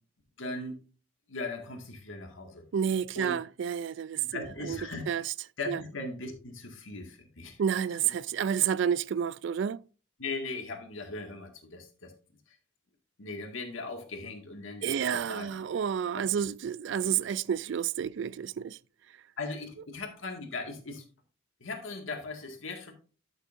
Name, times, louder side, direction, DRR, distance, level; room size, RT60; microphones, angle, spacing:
voice 1, 0.4-0.8 1.3-2.7 3.2-3.4 4.2-5.2 5.6-7.6 10.2-12.1 13.2-15.6 16.1-16.3 19.4-21.0 21.6-22.9, left 3 dB, 80° left, 2.0 m, -39 dB
voice 2, 2.7-4.8 5.1-5.2 5.7-5.8 7.6-9.8 14.8-18.8, right 8 dB, 65° right, 0.3 m, -30 dB
12.0 x 6.4 x 2.6 m
head